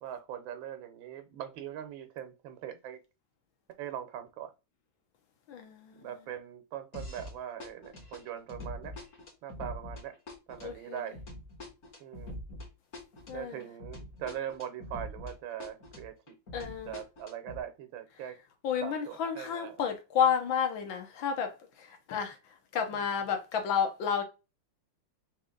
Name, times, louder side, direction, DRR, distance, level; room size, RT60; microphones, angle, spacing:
voice 1, 0.0-3.0 3.8-4.5 5.9-9.0 9.4-10.2 10.5-11.2 12.0-12.3 13.3-16.4 16.9-18.4 18.8-19.8 22.9-23.2, right 10 dB, 85° right, 1.5 m, -41 dB
voice 2, 5.5-6.1 10.6-11.0 13.3-13.6 16.5-17.0 18.6-22.4 22.7-24.2, left 7 dB, 90° left, 1.7 m, -31 dB
sound 1, 6.9-7.3 7.6-15.3 15.6-17.6, left 1 dB, 45° left, 1.5 m, -44 dB
4.0 x 2.9 x 3.7 m
omnidirectional pair, 2.1 m